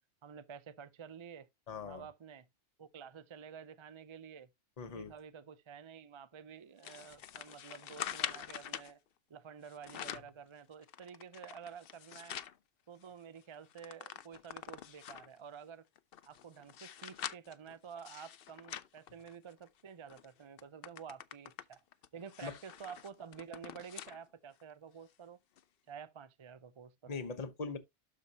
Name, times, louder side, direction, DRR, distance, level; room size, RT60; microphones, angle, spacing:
voice 1, 0.2-1.5 1.8-2.5 2.8-4.5 4.9-9.0 9.3-12.4 12.9-15.8 16.2-21.8 22.1-25.4 25.9-27.2, right 7 dB, 40° right, 0.4 m, -50 dB
voice 2, 1.7-2.1 4.8-5.1 22.4-22.5 27.1-27.8, left 4 dB, 35° left, 1.0 m, -41 dB
sound 1, 6.8-8.9 9.6-10.4 10.8-12.6 13.0-13.1 13.4-15.4 16.0-19.7 20.1-20.3 20.6-24.2 24.6-24.7 25.6-25.7, left 10 dB, 60° left, 0.7 m, -45 dB
12.0 x 4.5 x 2.8 m
omnidirectional pair, 1.2 m